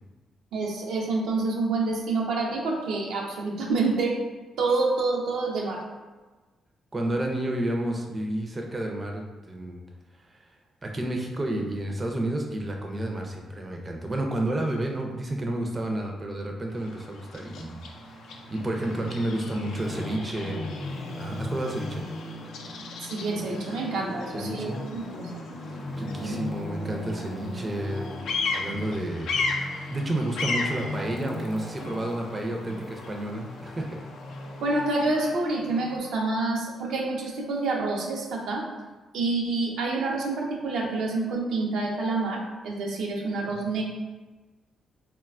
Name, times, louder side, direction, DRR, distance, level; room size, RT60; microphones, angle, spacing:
voice 1, 0.5-4.2 4.6-5.8 23.0-25.4 26.1-26.4 34.6-38.7 39.1-43.8, right 3 dB, 85° right, -1 dB, 0.5 m, -28 dB
voice 2, 6.9-9.8 10.8-17.9 18.3-20.6 21.2-22.0 24.3-24.8 26.0-28.1 28.5-29.3 29.9-34.0 43.5-43.8, right 1 dB, 25° right, 1 dB, 0.4 m, -30 dB
Bird vocalization bird call bird song, 16.7-35.5, left 4 dB, 85° left, 0.4 m, -37 dB
Traffic noise roadway noise, 17.5-36.0, left 1 dB, 55° left, 0.7 m, -38 dB
3.8 x 2.2 x 2.4 m, 1.2 s
cardioid pair, 90°, 0 cm